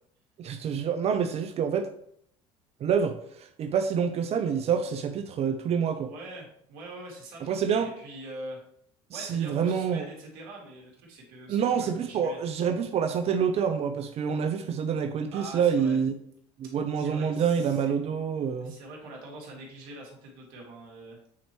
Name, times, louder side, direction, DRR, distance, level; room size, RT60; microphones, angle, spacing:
voice 1, 0.4-1.9 2.8-6.1 7.4-7.9 9.1-10.1 11.5-16.2 16.6-18.8, right 7 dB, 50° right, 0.6 m, -27 dB
voice 2, 6.1-8.6 9.1-12.4 15.3-16.0 16.6-17.9 18.6-21.2, right 2 dB, 75° right, 2.5 m, -44 dB
8.4 x 4.4 x 3.0 m
supercardioid pair, 75°, 14 cm